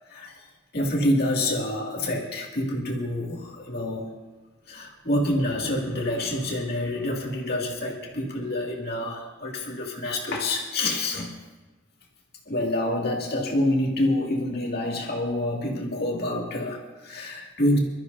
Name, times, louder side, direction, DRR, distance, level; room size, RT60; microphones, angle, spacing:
voice 1, 0.7-4.1 4.7-11.3 12.5-17.8, left 1 dB, 50° left, -2 dB, 2.3 m, -27 dB
24.0 x 13.5 x 2.7 m, 1.2 s
head